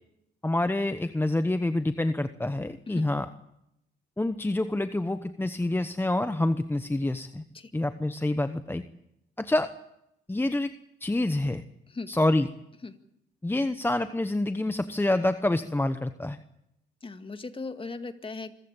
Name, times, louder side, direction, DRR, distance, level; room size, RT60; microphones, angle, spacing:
voice 1, 0.4-3.3 4.2-7.4 7.7-8.8 9.4-9.7 10.3-10.7 11.0-11.6 12.1-12.5 13.4-16.4, left 1 dB, 10° left, 10 dB, 1.0 m, -27 dB
voice 2, 17.0-18.5, left 3 dB, 25° left, 9 dB, 2.1 m, -38 dB
26.0 x 15.0 x 9.0 m, 0.82 s
cardioid pair, 90°, 20 cm